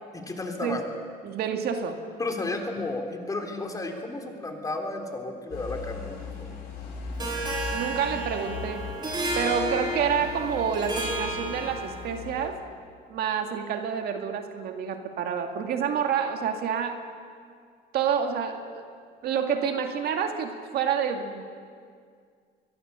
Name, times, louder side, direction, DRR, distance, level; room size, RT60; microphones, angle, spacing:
voice 1, 0.1-0.8 2.2-6.5, left 2 dB, 20° left, 3 dB, 3.3 m, -33 dB
voice 2, 1.2-2.0 7.7-8.9 9.4-12.6 13.1-17.0 17.9-18.8 19.2-21.4, right 7 dB, 70° right, 5 dB, 2.1 m, -28 dB
sound 1, 5.5-12.5, left 5 dB, 80° left, 6.9 m, -39 dB
Harp, 7.2-12.2, right 1 dB, 25° right, 4.4 m, -32 dB
23.0 x 22.5 x 6.9 m, 2.1 s
cardioid pair, 110°, 17 cm